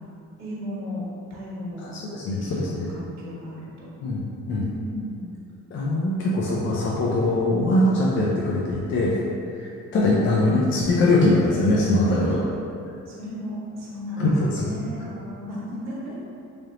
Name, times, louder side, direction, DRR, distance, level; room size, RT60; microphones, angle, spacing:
voice 1, 0.4-1.0 1.3-1.9 2.2-3.9 4.6-5.3 9.0-9.5 12.2-12.4 13.0-16.2, left 1 dB, 60° right, -6 dB, 1.2 m, -35 dB
voice 2, 2.1-2.9 4.0-4.6 5.7-9.2 9.6-12.4 14.2-14.7, left 2 dB, 40° left, -5 dB, 0.5 m, -22 dB
3.7 x 3.4 x 2.8 m, 2.6 s
cardioid pair, 150°, 31 cm